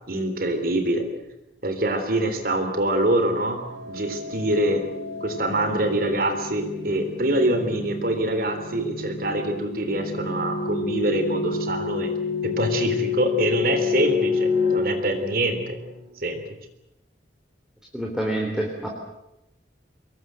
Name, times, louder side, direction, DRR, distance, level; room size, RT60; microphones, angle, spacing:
voice 1, 0.1-1.1 1.6-4.8 5.2-12.1 12.4-15.8 16.2-16.4, right 1 dB, 50° right, 7 dB, 3.7 m, -25 dB
sound 1, 3.3-16.0, left 5 dB, 70° left, 6.0 m, -29 dB
voice 2, 17.9-18.9, right 1 dB, 5° right, 0 dB, 3.6 m, -27 dB
25.0 x 21.5 x 7.9 m, 0.92 s
head